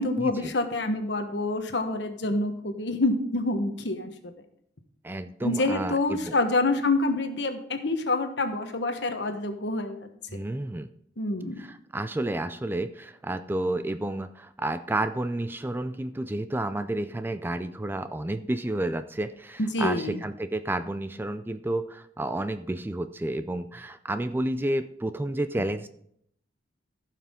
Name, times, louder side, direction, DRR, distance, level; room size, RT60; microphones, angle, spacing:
voice 1, 0.0-4.3 5.4-10.1 11.2-11.6 19.6-20.2, left 2 dB, 65° left, 6 dB, 1.2 m, -27 dB
voice 2, 5.0-6.3 10.3-10.9 11.6-25.9, right 1 dB, 10° right, 11 dB, 0.3 m, -31 dB
15.5 x 5.9 x 3.7 m, 0.70 s
head